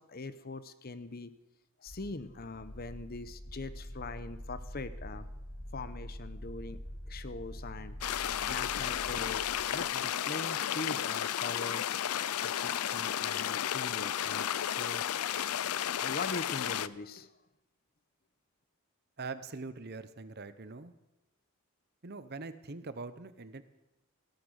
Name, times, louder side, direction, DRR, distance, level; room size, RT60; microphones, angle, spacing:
voice 1, 0.1-1.3 1.8-5.3 5.7-6.8 7.1-8.0 8.4-11.8 12.4-15.0 16.0-17.3, left 3 dB, 45° left, 13 dB, 0.8 m, -42 dB
sound 1, 1.9-10.1, equal, 60° left, 6.3 m, -45 dB
sound 2, 8.0-16.9, left 10 dB, 80° left, 0.5 m, -33 dB
voice 2, 19.2-20.9 22.0-23.6, right 3 dB, 45° right, 12 dB, 0.9 m, -43 dB
16.5 x 13.0 x 6.5 m, 0.95 s
head